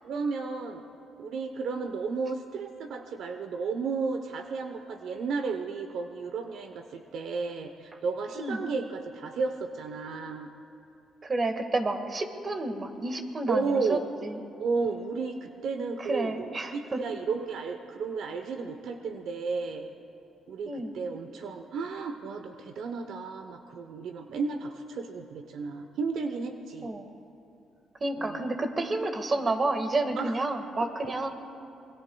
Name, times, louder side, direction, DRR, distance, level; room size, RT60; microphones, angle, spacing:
voice 1, 0.0-0.8 1.2-10.5 13.5-14.0 14.6-19.9 20.5-26.9 28.2-28.4 30.2-30.3 31.0-31.1, right 4 dB, 75° right, 6 dB, 0.8 m, -33 dB
voice 2, 11.2-14.4 16.0-17.2 20.7-20.9 26.8-27.1 28.0-31.3, right 2 dB, 35° right, 6 dB, 1.7 m, -30 dB
27.5 x 22.0 x 2.3 m, 2.9 s
cardioid pair, 90°, 0 cm